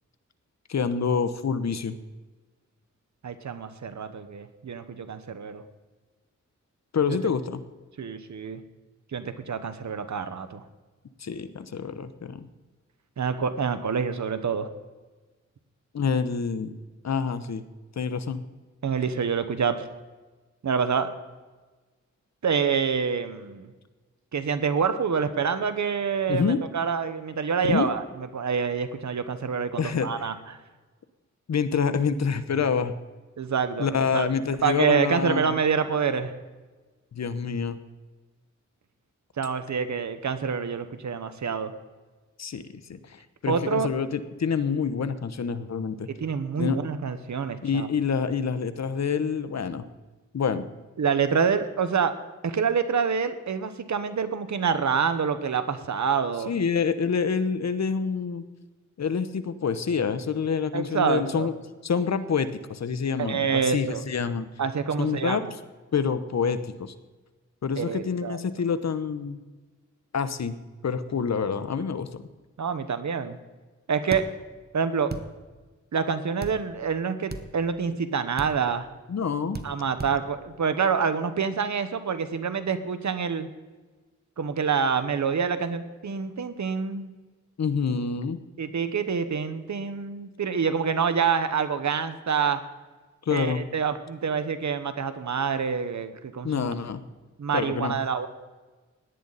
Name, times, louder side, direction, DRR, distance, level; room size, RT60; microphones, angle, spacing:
voice 1, 0.7-1.9 6.9-7.6 11.2-12.5 15.9-16.7 17.0-17.6 18.0-18.4 26.3-26.6 27.7-27.9 29.8-30.1 31.5-32.9 33.8-35.5 37.1-37.8 42.4-46.1 46.6-46.8 47.6-49.9 50.3-50.7 56.5-58.4 59.0-61.5 61.8-64.5 65.0-65.4 65.9-66.9 67.6-69.4 70.1-70.6 70.8-72.2 79.1-79.6 87.6-88.4 93.3-93.6 96.4-97.0 97.5-98.0, left 6 dB, 60° left, 12 dB, 1.0 m, -27 dB
voice 2, 3.2-5.6 8.0-8.6 9.1-10.6 13.2-14.7 18.8-19.9 20.6-21.1 22.4-23.7 24.3-28.0 28.3-30.4 33.4-34.3 34.6-36.3 39.4-41.7 43.5-43.9 46.1-47.9 51.0-52.1 52.4-56.5 60.7-61.5 63.2-64.0 64.6-65.5 67.8-68.4 72.6-73.4 73.9-74.3 74.7-75.1 75.9-78.9 79.6-83.5 84.4-87.1 88.6-92.6 93.3-96.7 97.4-98.3, right 6 dB, 65° right, 10 dB, 1.1 m, -27 dB
sound 1, 74.1-74.2 75.1-75.3 76.4-76.6 77.3-77.5 78.4-78.5 79.5-79.7 80.0-80.1, right 3 dB, 30° right, 1.1 m, -34 dB
17.5 x 10.5 x 4.1 m, 1.3 s
cardioid pair, 65°, 31 cm